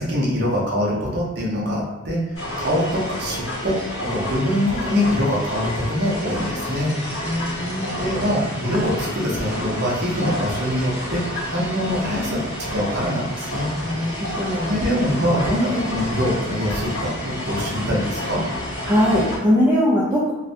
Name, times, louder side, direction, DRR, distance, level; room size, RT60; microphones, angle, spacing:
voice 1, 0.0-7.0 7.9-13.7 14.5-18.4, equal, 50° right, -4 dB, 0.6 m, -24 dB
sound 1, 2.3-19.4, left 1 dB, 85° left, 1.0 m, -29 dB
voice 2, 7.2-8.1 13.8-14.7 18.9-20.3, equal, 10° right, -7 dB, 0.3 m, -21 dB
2.3 x 2.1 x 2.6 m, 0.97 s
head